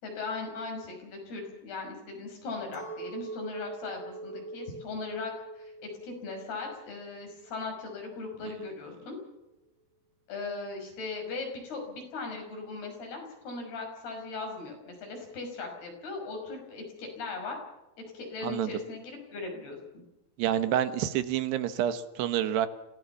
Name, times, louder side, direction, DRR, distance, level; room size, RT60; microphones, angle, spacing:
voice 1, 0.0-9.2 10.3-17.6 18.1-20.0, left 3 dB, 70° left, 2 dB, 7.8 m, -38 dB
Chink clink, 2.7-8.2, right 2 dB, 30° right, 4.3 m, -43 dB
voice 2, 20.4-22.7, right 10 dB, 80° right, 11 dB, 3.3 m, -28 dB
26.5 x 17.5 x 7.2 m, 0.95 s
omnidirectional pair, 4.7 m